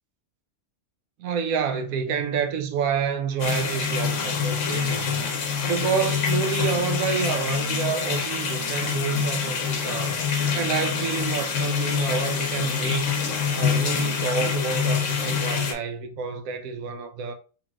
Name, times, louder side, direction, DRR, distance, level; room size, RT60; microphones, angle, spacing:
voice 1, 1.2-5.2 5.6-10.2 10.6-13.2 13.5-17.3, right 6 dB, 75° right, 1.0 m, -28 dB
sound 1, 3.4-15.7, left 6 dB, 65° left, 1.0 m, -26 dB
3.9 x 3.4 x 2.3 m
omnidirectional pair, 1.5 m